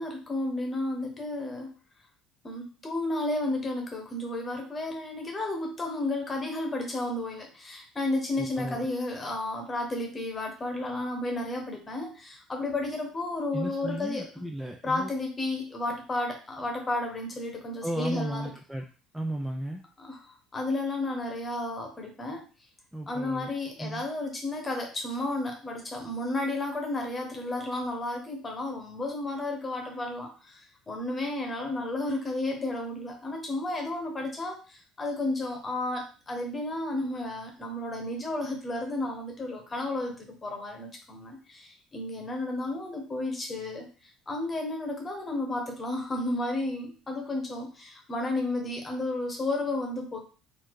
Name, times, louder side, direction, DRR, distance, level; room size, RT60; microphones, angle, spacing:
voice 1, 0.0-1.7 2.4-14.3 14.8-18.5 20.0-20.2 20.5-22.4 23.1-43.9 44.3-50.2, left 2 dB, 15° left, 2 dB, 1.1 m, -32 dB
voice 2, 8.4-8.9 13.5-15.1 17.8-18.8 19.1-19.8 22.9-23.5 23.8-24.0, right 1 dB, 5° right, 2 dB, 0.4 m, -34 dB
4.3 x 2.7 x 4.6 m, 0.37 s
cardioid pair, 165°, 0 cm